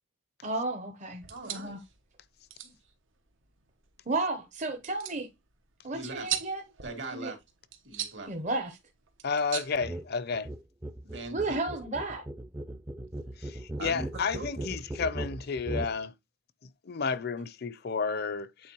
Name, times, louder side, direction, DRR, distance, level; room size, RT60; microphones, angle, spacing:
voice 1, 0.4-1.8 4.1-5.3 5.8-6.6 7.1-7.3 8.3-8.8 11.3-12.2, right 2 dB, 40° right, 0.8 m, -33 dB
sound 1, 1.1-10.6, right 10 dB, 85° right, 1.2 m, -42 dB
voice 2, 1.3-1.8 2.6-2.7 5.9-6.3 6.8-7.4 7.8-8.3 11.0-11.6 13.8-14.7, right 2 dB, 65° right, 2.3 m, -40 dB
voice 3, 9.2-10.5 13.4-16.1 16.9-18.7, left 5 dB, 55° left, 0.5 m, -32 dB
sound 2, 9.8-10.1 10.3-16.0, right 1 dB, 15° right, 0.5 m, -38 dB
8.7 x 4.1 x 3.0 m
head